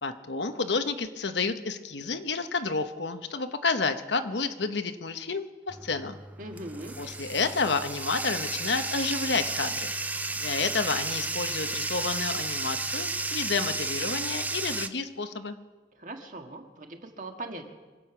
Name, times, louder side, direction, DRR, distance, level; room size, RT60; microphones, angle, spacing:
voice 1, 0.0-6.2 7.0-9.9 10.4-15.6, left 4 dB, 85° left, 8 dB, 1.0 m, -30 dB
Bathtub (filling or washing), 5.7-14.9, right 3 dB, 10° right, 0.4 m, -33 dB
voice 2, 6.4-7.0 15.9-17.7, right 2 dB, 45° right, 3 dB, 1.7 m, -40 dB
25.5 x 8.7 x 6.1 m, 1.3 s
head